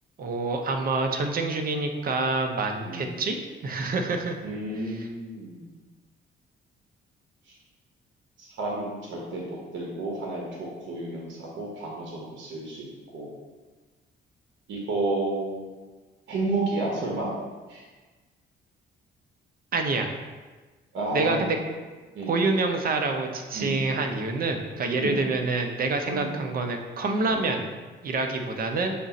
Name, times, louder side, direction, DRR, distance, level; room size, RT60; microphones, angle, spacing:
voice 1, 0.2-3.4 3.6-4.3 19.7-20.1 21.1-21.6 22.3-27.6 28.0-28.9, right 3 dB, 45° right, 4 dB, 0.6 m, -27 dB
voice 2, 4.4-5.7 7.5-7.6 8.4-12.9 13.1-13.3 14.7-15.6 16.3-17.3 17.7-17.8 20.9-21.6 22.1-22.4 23.5-23.8 25.0-25.3 26.1-26.4 27.3-27.4, right 2 dB, 70° right, -2 dB, 1.0 m, -31 dB
5.2 x 2.5 x 4.0 m, 1.3 s
cardioid pair, 90°, 20 cm